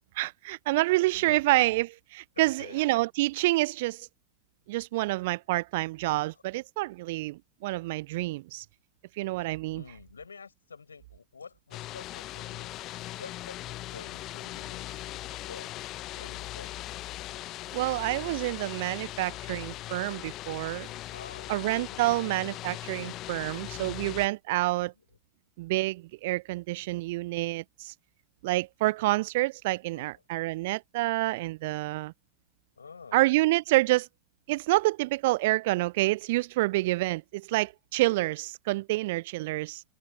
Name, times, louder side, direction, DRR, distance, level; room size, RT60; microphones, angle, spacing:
voice 1, 0.2-4.1 4.7-8.6 9.2-9.8 17.7-20.9 21.5-24.9 25.6-27.9 28.4-32.1 33.1-34.1 34.5-39.8, right 20 dB, 50° right, 0.5 m, -28 dB
voice 2, 1.1-1.5 2.3-2.8 6.3-6.4 9.7-12.7 13.2-14.8 15.5-15.8 16.1-16.8 21.1-21.5 21.9-22.7 24.7-25.1 29.9-30.2 32.8-33.2, left 5 dB, 75° left, 6.0 m, -49 dB
sound 1, 11.7-24.3, left 16 dB, 35° left, 0.9 m, -40 dB
figure-of-eight pair, 90°, 0 cm